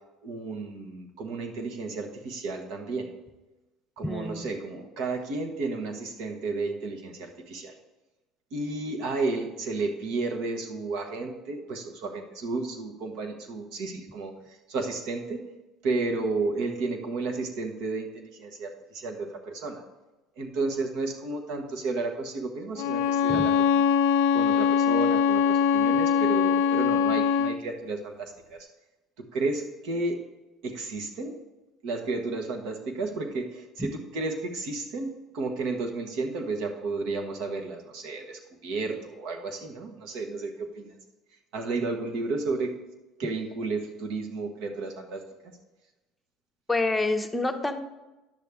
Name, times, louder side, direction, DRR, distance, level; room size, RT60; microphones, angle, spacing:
voice 1, 0.2-3.1 4.0-7.7 8.5-15.4 15.8-19.8 20.4-23.9 24.3-28.7 29.2-30.2 30.6-31.4 31.8-41.0 41.5-42.8 43.2-45.2, right 3 dB, 75° right, 4 dB, 1.3 m, -32 dB
voice 2, 4.0-4.5 23.3-23.4 46.7-47.8, left 2 dB, 10° left, 6 dB, 0.7 m, -27 dB
Bowed string instrument, 22.8-27.6, left 7 dB, 85° left, 0.4 m, -22 dB
10.5 x 6.7 x 3.5 m, 1.1 s
supercardioid pair, 100°, 0 cm